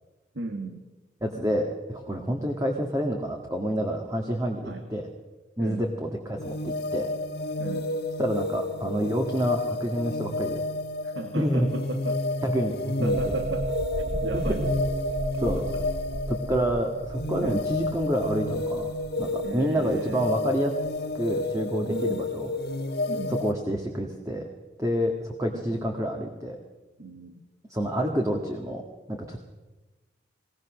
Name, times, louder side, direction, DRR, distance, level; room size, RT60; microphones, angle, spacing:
voice 1, 0.3-0.8 4.7-4.8 5.6-5.9 7.6-7.9 11.0-12.2 13.0-13.7 14.0-14.6 15.3-15.8 17.4-17.7 19.4-20.3 21.9-22.3 23.1-23.3 25.5-25.8 27.0-27.4, right 2 dB, 80° right, 6 dB, 1.7 m, -35 dB
voice 2, 1.2-5.1 5.6-7.1 8.2-10.6 11.4-11.7 12.4-13.4 14.3-14.7 15.4-15.6 16.3-18.9 19.2-20.7 21.1-22.5 23.3-24.4 24.8-26.6 27.7-28.8 29.1-29.4, equal, 20° right, 2 dB, 1.7 m, -28 dB
sound 1, 6.4-23.5, left 2 dB, 60° left, 1.3 m, -31 dB
sound 2, 13.1-20.5 20.9-21.1, right 2 dB, 45° right, 1.2 m, -34 dB
21.5 x 19.0 x 6.4 m, 1.2 s
head